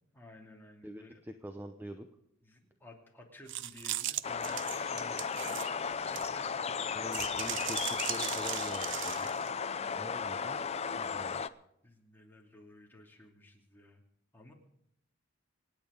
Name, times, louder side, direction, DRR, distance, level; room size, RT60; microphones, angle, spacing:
voice 1, 0.1-1.2 2.4-5.7 6.1-6.5 11.8-14.0 14.3-14.5, left 2 dB, 10° left, 0 dB, 2.8 m, -54 dB
voice 2, 0.8-2.1 6.9-7.8 8.1-9.3 9.9-11.5, equal, 10° right, 7 dB, 0.8 m, -45 dB
sound 1, 3.5-6.5 7.1-9.5, right 14 dB, 60° right, 0.6 m, -38 dB
sound 2, 4.2-11.5, left 6 dB, 30° left, 0.5 m, -35 dB
26.5 x 9.2 x 5.2 m, 0.76 s
head